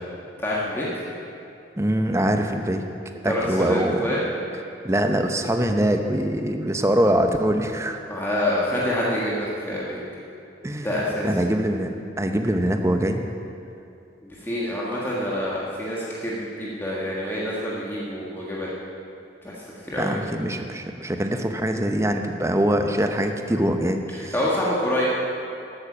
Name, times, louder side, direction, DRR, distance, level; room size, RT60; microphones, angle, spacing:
voice 1, 0.4-0.9 3.2-4.2 8.1-10.0 10.8-11.3 14.2-18.7 19.4-19.5 19.8-20.2 24.1-25.0, left 1 dB, 15° left, -6 dB, 1.6 m, -26 dB
voice 2, 1.8-4.1 4.8-8.0 10.6-10.9 11.2-13.2 20.0-24.3, right 1 dB, 15° right, 5 dB, 0.8 m, -23 dB
12.0 x 9.1 x 7.2 m, 2.5 s
head